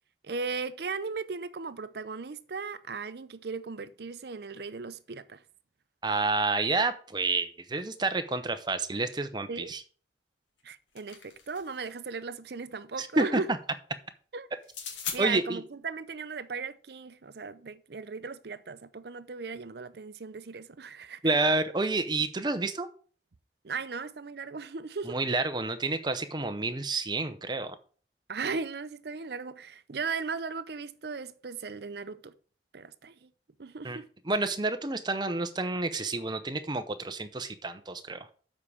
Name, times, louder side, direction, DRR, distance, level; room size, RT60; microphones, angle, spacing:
voice 1, 0.2-5.4 9.5-9.7 10.6-13.5 14.3-14.5 15.1-21.3 23.6-25.2 28.3-32.3 32.7-33.3 33.6-34.1, right 4 dB, 60° right, 0.6 m, -37 dB
voice 2, 6.0-9.8 13.0-13.4 15.2-15.6 21.2-22.9 25.0-27.8 33.8-34.0 34.3-38.3, right 3 dB, 25° right, 0.7 m, -29 dB
sound 1, 10.6-11.9 14.6-15.2, left 7 dB, 90° left, 2.0 m, -39 dB
7.5 x 4.8 x 7.1 m
head